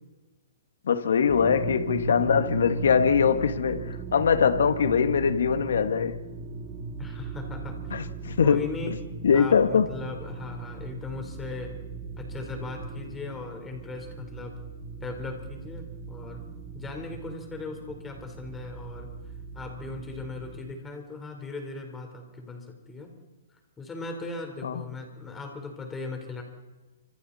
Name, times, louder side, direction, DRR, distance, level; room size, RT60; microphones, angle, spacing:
voice 1, 0.9-6.2 7.9-8.7 9.2-9.9 24.6-24.8, left 7 dB, 75° left, 1.8 m, -22 dB
sound 1, 1.3-20.7, right 4 dB, 25° right, 2.0 m, -38 dB
voice 2, 7.0-7.8 8.4-9.0 9.3-11.7 12.2-14.6 15.0-16.4 16.7-19.1 19.5-23.1 23.8-26.4, left 3 dB, 10° left, 4.4 m, -38 dB
29.0 x 26.5 x 4.3 m
hypercardioid pair, 150°, 0 cm